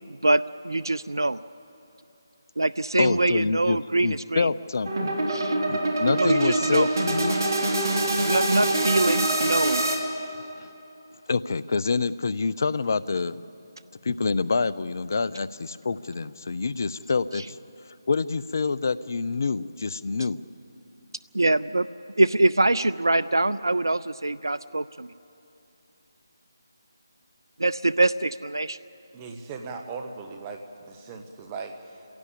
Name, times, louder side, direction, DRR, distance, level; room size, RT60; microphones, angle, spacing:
voice 1, 0.1-1.4 2.6-4.5 5.3-5.6 6.2-6.9 8.2-9.8 21.3-21.9 22.2-25.1 27.6-28.8, right 2 dB, 80° right, 17 dB, 0.5 m, -24 dB
voice 2, 3.0-5.2 5.7-7.4 11.3-13.4 14.0-17.4 18.1-20.4, left 4 dB, 50° left, 18 dB, 0.6 m, -26 dB
sound 1, 4.9-10.0, right 2 dB, 60° right, 3.0 m, -24 dB
voice 3, 29.1-32.0, right 4 dB, 20° right, 4 dB, 1.6 m, -38 dB
26.0 x 16.5 x 8.6 m, 2.9 s
figure-of-eight pair, 155°, 2 cm